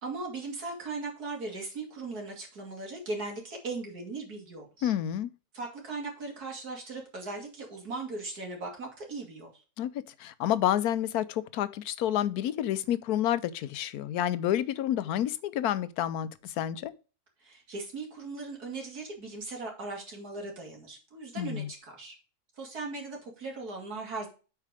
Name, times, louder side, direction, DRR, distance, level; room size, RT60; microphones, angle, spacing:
voice 1, 0.0-4.9 5.5-9.6 17.4-22.1 22.6-24.3, right 3 dB, 85° right, 3.1 m, -38 dB
voice 2, 4.8-5.3 9.8-9.9 10.2-16.9 21.4-21.7, left 11 dB, 85° left, 1.2 m, -29 dB
8.3 x 4.6 x 4.8 m
omnidirectional pair, 1.6 m